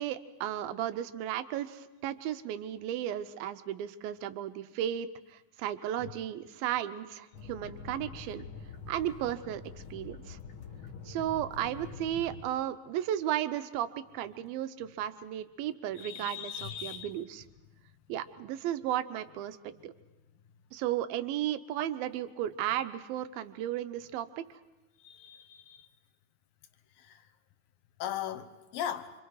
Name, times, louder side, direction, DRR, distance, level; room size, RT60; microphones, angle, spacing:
voice 1, 0.0-8.4 8.9-9.6 9.9-10.4 11.1-17.4 18.1-19.6 19.8-19.9 20.7-24.4, right 11 dB, 80° right, 2.6 m, -34 dB
sound 1, 7.3-12.4, left 5 dB, 55° left, 1.5 m, -45 dB
voice 2, 16.0-17.1 25.0-25.8 28.0-29.1, left 10 dB, 75° left, 2.7 m, -38 dB
27.0 x 25.5 x 4.7 m
omnidirectional pair, 4.2 m